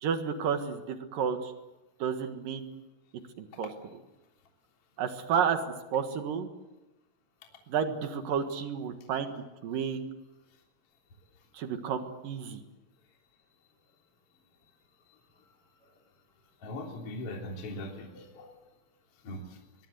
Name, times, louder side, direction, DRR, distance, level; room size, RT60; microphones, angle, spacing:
voice 1, 0.0-1.5 2.0-2.7 3.4-3.7 5.0-5.6 5.9-6.5 7.7-9.3 9.6-10.0 11.5-12.6, right 7 dB, 60° right, 7 dB, 2.5 m, -31 dB
voice 2, 16.6-18.5 19.2-19.6, left 1 dB, 30° left, 1 dB, 3.7 m, -40 dB
23.5 x 22.5 x 8.1 m, 1.0 s
omnidirectional pair, 5.8 m